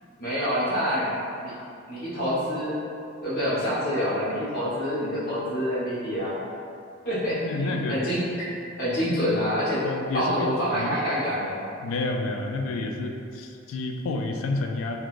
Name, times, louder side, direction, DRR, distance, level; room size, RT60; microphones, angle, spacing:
voice 1, 0.2-1.1 1.4-1.5 1.9-2.8 3.2-6.4 7.0-8.2 8.8-9.8 10.1-11.6, equal, 50° left, -10 dB, 1.1 m, -26 dB
voice 2, 7.3-8.0 9.1-9.2 9.8-11.0 11.8-15.0, left 2 dB, 70° left, 3 dB, 0.3 m, -30 dB
3.7 x 2.3 x 2.5 m, 2.5 s
head